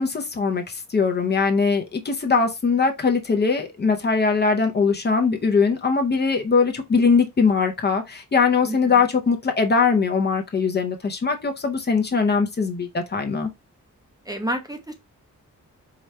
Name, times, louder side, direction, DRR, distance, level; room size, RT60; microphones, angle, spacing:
voice 1, 0.0-13.5, left 5 dB, 35° left, 0.6 m, -21 dB
voice 2, 8.6-9.0 14.3-14.9, right 1 dB, 10° right, 0.6 m, -30 dB
4.8 x 2.3 x 4.1 m
wide cardioid pair, 170°, 31 cm